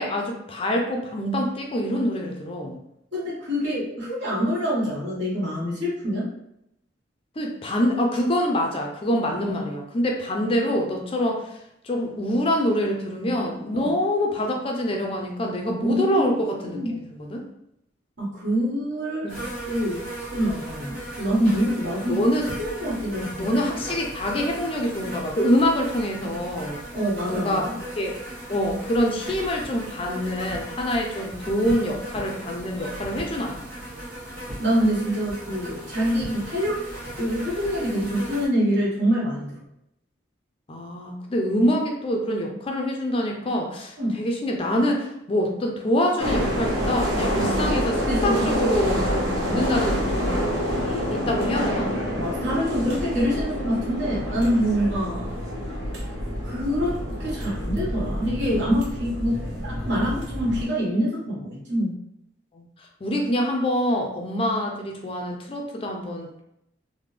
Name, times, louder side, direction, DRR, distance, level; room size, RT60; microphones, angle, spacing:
voice 1, 0.0-2.8 7.4-11.6 11.8-17.4 19.2-19.4 22.1-22.5 23.4-26.8 27.3-27.7 28.0-28.2 28.5-33.7 40.7-51.9 52.7-52.8 62.5-66.4, equal, 30° left, 1 dB, 0.4 m, -25 dB
voice 2, 3.1-6.3 9.4-9.6 13.7-13.9 15.8-16.9 18.2-19.3 19.6-20.0 20.3-22.2 22.6-23.5 26.9-27.8 34.6-36.8 37.2-39.5 44.0-44.2 47.3-47.5 48.1-49.0 52.1-55.4 56.4-61.9, equal, 70° right, -6 dB, 1.5 m, -25 dB
sound 1, 19.3-38.5, right 1 dB, 45° right, 1.5 m, -37 dB
sound 2, 46.2-60.6, equal, 85° right, 0.8 m, -27 dB
3.4 x 2.1 x 3.2 m, 0.80 s
head